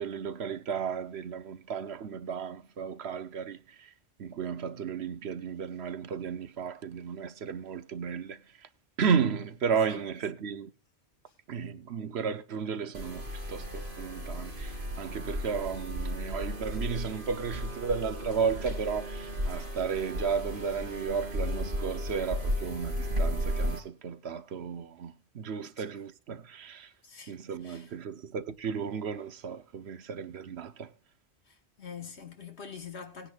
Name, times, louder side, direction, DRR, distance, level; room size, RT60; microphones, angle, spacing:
voice 1, 0.0-3.9 4.2-8.7 9.0-10.7 11.5-26.9 27.3-30.9, right 6 dB, 70° right, 1.1 m, -34 dB
sound 1, 12.9-23.8, equal, 50° right, 2.9 m, -34 dB
voice 2, 27.0-27.4 27.6-27.9 31.5-33.3, left 6 dB, 80° left, 1.8 m, -44 dB
19.0 x 9.8 x 2.4 m
omnidirectional pair, 1.1 m